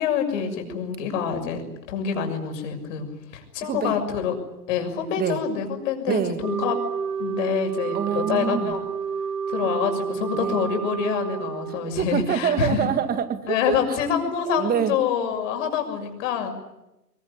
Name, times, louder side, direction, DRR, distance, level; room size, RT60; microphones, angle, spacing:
voice 1, 0.0-1.6 1.9-4.3 4.7-6.8 7.2-8.9 9.5-12.9 13.5-16.5, left 7 dB, 50° left, 5 dB, 6.8 m, -26 dB
voice 2, 3.6-3.9 5.2-5.4 6.1-6.4 7.9-8.8 10.3-10.6 12.0-13.8 14.6-15.0, right 8 dB, 20° right, 10 dB, 2.0 m, -25 dB
Wind instrument woodwind instrument, 6.4-12.0, right 7 dB, 80° right, 2.8 m, -30 dB
24.0 x 23.5 x 9.8 m, 0.93 s
hypercardioid pair, 120°, 49 cm